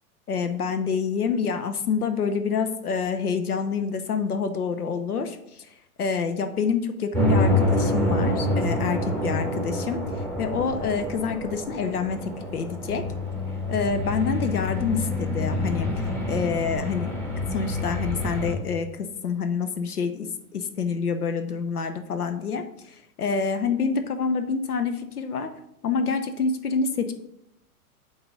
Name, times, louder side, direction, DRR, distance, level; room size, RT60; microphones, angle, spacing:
voice 1, 0.3-5.7 6.0-13.0 13.7-15.9 16.3-17.2 17.5-20.3 20.5-25.5 25.8-27.1, left 5 dB, 80° left, 8 dB, 0.9 m, -27 dB
sound 1, 7.1-18.5, left 1 dB, 5° left, 1.8 m, -27 dB
7.9 x 3.9 x 5.2 m, 0.80 s
figure-of-eight pair, 105°, 45 cm